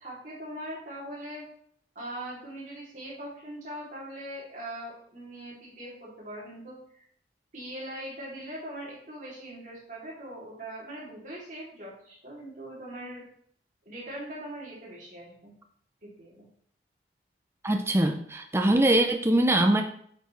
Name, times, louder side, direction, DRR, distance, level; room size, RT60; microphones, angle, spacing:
voice 1, 0.0-1.4 1.9-7.0 7.5-13.2 13.8-15.5 16.0-16.4, right 1 dB, 45° right, -6 dB, 2.9 m, -41 dB
voice 2, 17.6-19.8, right 1 dB, 15° right, 5 dB, 0.6 m, -22 dB
9.1 x 5.7 x 3.2 m, 0.64 s
head